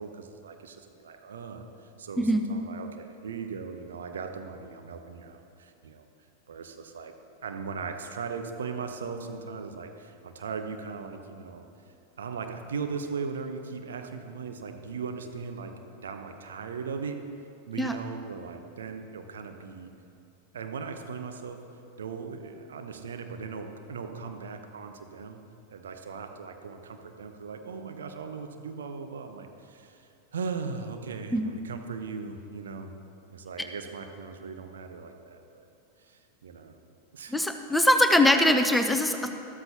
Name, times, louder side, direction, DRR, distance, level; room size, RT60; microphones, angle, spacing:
voice 1, 0.0-6.1 6.5-7.1 7.4-11.7 12.2-17.2 17.7-19.9 20.5-21.6 22.0-25.4 25.7-32.9 33.3-35.7 36.0-36.7 37.1-37.4, right 5 dB, 65° right, 6 dB, 0.9 m, -38 dB
voice 2, 37.3-39.3, left 1 dB, 5° left, 6 dB, 0.7 m, -22 dB
13.5 x 13.5 x 2.9 m, 2.6 s
figure-of-eight pair, 90°, 0 cm